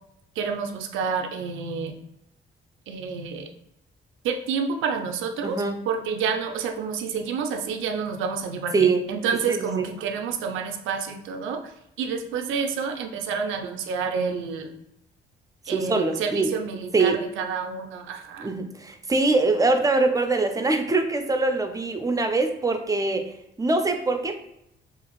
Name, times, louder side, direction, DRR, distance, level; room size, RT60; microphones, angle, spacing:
voice 1, 0.4-2.0 2.9-3.5 4.2-11.6 12.0-14.7 15.7-18.5, right 6 dB, 85° right, 4 dB, 0.4 m, -29 dB
voice 2, 5.4-5.8 8.7-9.0 9.5-9.9 15.7-16.5 16.9-17.2 18.4-23.2 23.6-24.4, right 3 dB, 15° right, 6 dB, 0.4 m, -23 dB
2.7 x 2.5 x 2.9 m, 0.81 s
cardioid pair, 90°, 20 cm